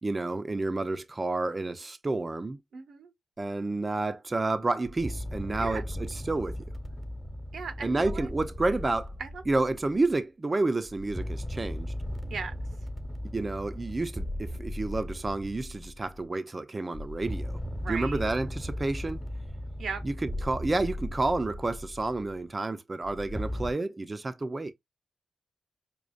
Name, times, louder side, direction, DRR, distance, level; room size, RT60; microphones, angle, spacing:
voice 1, 0.0-2.6 3.4-6.6 7.8-9.1 9.5-11.9 13.3-17.6 17.9-19.2 20.0-24.7, right 2 dB, 30° right, 0.6 m, -30 dB
voice 2, 2.7-3.1 5.6-5.8 7.5-8.3 9.2-9.3 12.3-12.5 17.8-18.2 19.8-20.0, right 5 dB, 80° right, 0.9 m, -37 dB
sound 1, 4.8-10.1 10.9-16.2 16.9-22.3 23.0-23.7, left 1 dB, 5° left, 1.2 m, -37 dB
5.1 x 2.4 x 2.5 m
cardioid pair, 60°, 0 cm